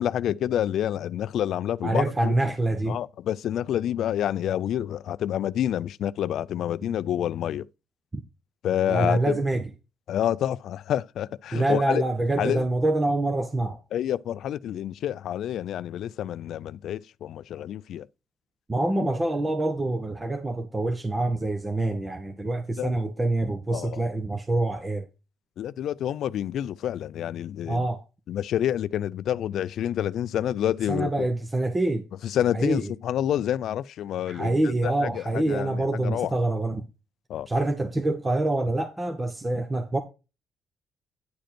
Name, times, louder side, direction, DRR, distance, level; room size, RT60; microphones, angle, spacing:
voice 1, 0.0-2.3 2.9-7.7 8.6-9.4 10.1-12.0 12.4-12.7 13.9-18.1 22.8-23.1 23.7-24.0 25.6-27.9 28.3-31.3 32.2-36.4 37.3-37.5, left 11 dB, 75° left, 0.3 m, -28 dB
voice 2, 1.8-3.0 8.9-9.7 11.5-13.8 18.7-25.1 27.7-28.0 30.9-32.0 32.5-32.8 34.3-36.8 37.5-40.0, right 2 dB, 20° right, 1.1 m, -26 dB
10.0 x 5.1 x 4.4 m
cardioid pair, 90°, 0 cm